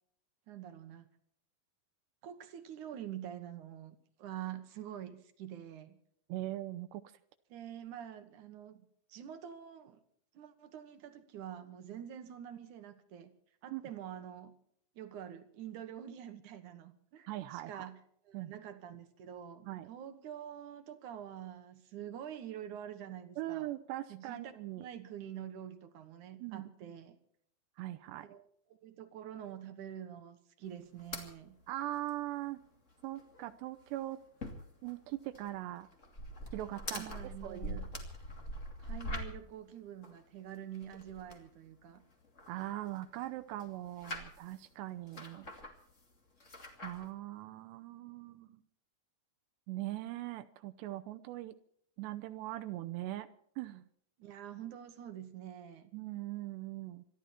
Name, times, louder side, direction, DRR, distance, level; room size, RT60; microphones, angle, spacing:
voice 1, 0.5-1.1 2.2-6.0 7.5-8.8 9.1-10.0 10.3-13.3 13.6-14.5 15.0-18.0 18.3-23.7 24.1-27.2 28.2-31.6 36.9-37.9 38.8-42.0 54.2-55.9, right 10 dB, 65° right, 9 dB, 2.2 m, -46 dB
voice 2, 6.3-7.0 13.7-13.8 17.3-17.8 18.3-18.5 19.7-19.9 23.4-24.9 26.4-26.6 27.8-28.3 31.7-32.6 33.0-34.2 34.8-35.9 36.5-37.1 37.4-37.9 42.5-45.5 46.8-48.6 49.7-51.5 52.0-53.3 53.6-53.8 55.9-57.1, right 15 dB, 85° right, 10 dB, 2.9 m, -41 dB
sound 1, 31.0-31.3 31.6-31.7 32.0-32.1 32.5-32.6 32.9-33.5 33.8-39.6 40.0-41.4 41.9-43.3 43.6-44.6 45.0-46.0 46.4-47.1, left 1 dB, 25° left, 2.0 m, -44 dB
26.5 x 12.0 x 4.3 m, 0.67 s
omnidirectional pair, 4.9 m